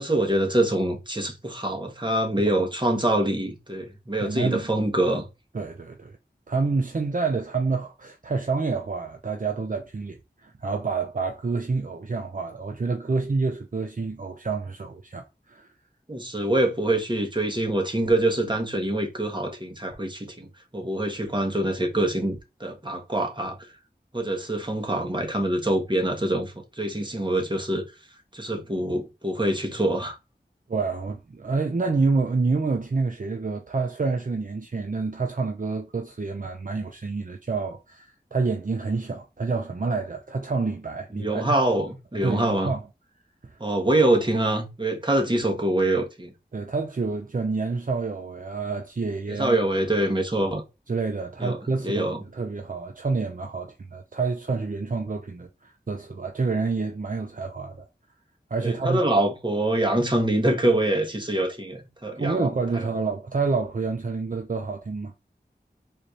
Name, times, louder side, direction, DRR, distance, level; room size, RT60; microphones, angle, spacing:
voice 1, 0.0-5.3 16.1-20.5 20.7-23.6 24.1-27.8 28.3-30.2 41.1-42.7 43.6-46.3 49.3-50.6 51.4-51.6 51.8-52.2 58.6-62.9, right 1 dB, 25° right, 1.2 m, -25 dB
voice 2, 4.2-4.7 5.5-6.2 6.5-15.7 30.7-41.5 42.1-42.8 43.4-43.6 46.5-49.6 50.9-57.9 58.5-59.0 62.2-65.1, right 4 dB, 50° right, 0.6 m, -28 dB
4.2 x 2.6 x 3.1 m
wide cardioid pair, 45°, 18 cm